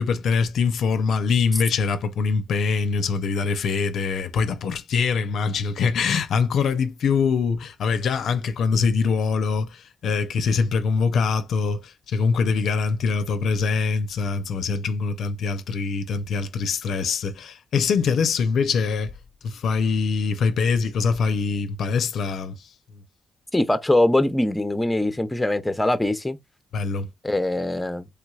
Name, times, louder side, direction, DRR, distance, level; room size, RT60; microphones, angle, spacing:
voice 1, 0.0-19.1 19.4-22.7 26.7-27.1, left 5 dB, 80° left, 0.4 m, -23 dB
voice 2, 23.5-26.4 27.2-28.1, left 1 dB, 10° left, 0.6 m, -22 dB
3.3 x 3.0 x 2.3 m
cardioid pair, 75°, 0 cm